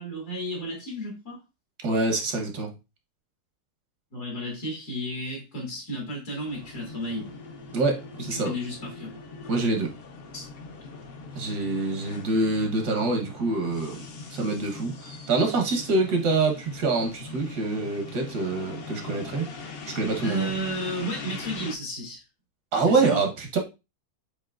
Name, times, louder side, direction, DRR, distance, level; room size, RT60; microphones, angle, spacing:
voice 1, 0.0-1.4 4.1-7.3 8.2-9.2 10.3-10.5 20.2-22.2 22.8-23.2, equal, 80° left, 2.6 m, -33 dB
voice 2, 1.8-2.7 7.7-8.5 9.5-9.9 11.3-14.0 14.3-19.5 19.9-20.5 22.7-23.6, right 3 dB, 85° right, 1.7 m, -25 dB
sound 1, 6.5-21.8, left 4 dB, 55° left, 0.7 m, -41 dB
7.4 x 2.8 x 2.4 m
omnidirectional pair, 1.7 m